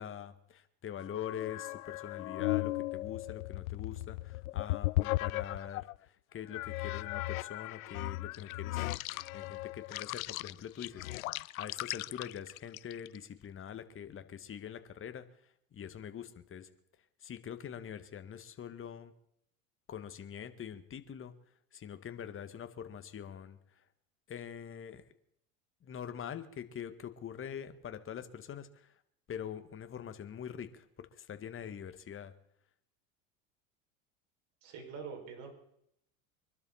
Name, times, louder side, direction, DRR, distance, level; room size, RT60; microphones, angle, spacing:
voice 1, 0.0-8.9 9.3-11.1 11.6-15.2 15.7-16.7 17.2-19.1 19.9-21.3 21.7-23.6 24.3-25.0 25.8-29.0 29.3-32.3, left 9 dB, 30° left, 10 dB, 1.8 m, -44 dB
sound 1, 1.0-6.0 6.5-13.2, left 18 dB, 75° left, 0.5 m, -37 dB
voice 2, 34.6-35.5, right 5 dB, 50° right, 2 dB, 6.2 m, -44 dB
24.5 x 12.5 x 4.3 m, 0.74 s
hypercardioid pair, 85°, 42 cm